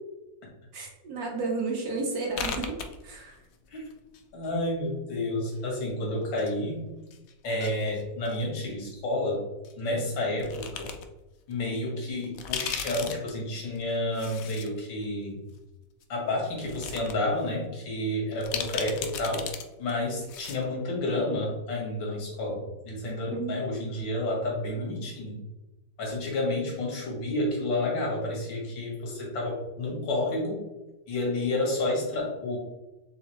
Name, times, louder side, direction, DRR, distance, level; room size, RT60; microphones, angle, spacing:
voice 1, 0.7-2.7 3.0-3.3 23.3-23.6, right 3 dB, 60° right, -1 dB, 1.3 m, -32 dB
sound 1, 2.3-3.6 3.8-4.8 5.5-6.5 6.8-8.4 9.6-9.7 10.4-11.0 11.5-11.6 12.2-14.7 15.0-15.1 16.0-16.1 16.5-17.1 17.5-17.6 18.4-19.6 19.9-20.0 20.2-20.6, left 7 dB, 75° left, 0.8 m, -36 dB
voice 2, 4.3-6.9 7.4-9.4 9.8-10.9 11.5-15.4 16.1-19.5 19.8-25.4 26.0-30.6 31.1-32.6, left 1 dB, 90° left, -1 dB, 2.2 m, -30 dB
4.9 x 3.4 x 3.0 m, 1.0 s
omnidirectional pair, 2.0 m